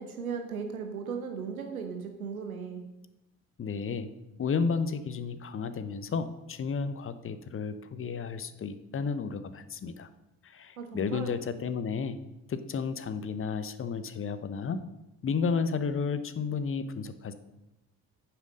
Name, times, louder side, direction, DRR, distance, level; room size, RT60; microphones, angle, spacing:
voice 1, 0.0-2.8 10.8-11.3, right 6 dB, 80° right, 5 dB, 1.0 m, -37 dB
voice 2, 3.6-4.1 4.4-10.1 10.4-12.2 12.5-14.8 15.2-17.3, left 5 dB, 30° left, 12 dB, 0.9 m, -32 dB
9.2 x 7.3 x 6.5 m, 0.96 s
figure-of-eight pair, 45°, 42 cm